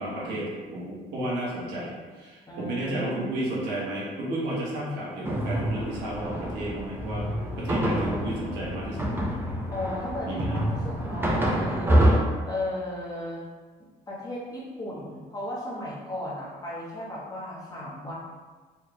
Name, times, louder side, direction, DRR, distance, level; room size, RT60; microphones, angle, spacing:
voice 1, 0.0-7.3 7.6-9.1 10.3-10.5, right 1 dB, 90° right, -5 dB, 1.2 m, -32 dB
voice 2, 2.5-3.2 9.7-12.1 12.4-13.4 14.1-18.1, left 1 dB, 20° left, -5 dB, 1.1 m, -35 dB
sound 1, 5.2-12.2, right 1 dB, 15° right, 0.7 m, -26 dB
4.3 x 3.3 x 2.3 m, 1.4 s
cardioid pair, 110°, 17 cm